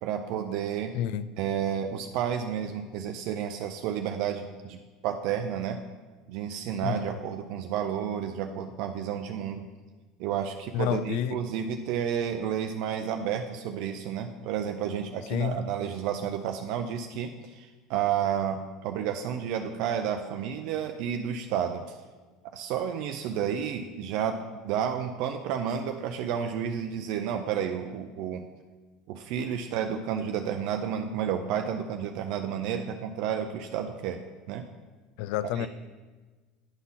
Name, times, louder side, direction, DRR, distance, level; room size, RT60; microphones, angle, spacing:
voice 1, 0.0-0.9 1.4-5.8 6.3-9.7 10.2-21.9 22.4-28.5 29.1-34.2 34.5-34.6 35.5-35.7, right 8 dB, 65° right, 6 dB, 0.5 m, -31 dB
voice 2, 0.9-1.3 6.8-7.2 10.7-11.4 15.3-15.7 35.2-35.7, left 10 dB, 70° left, 16 dB, 0.3 m, -29 dB
9.8 x 4.0 x 5.5 m, 1.3 s
hypercardioid pair, 85°, 0 cm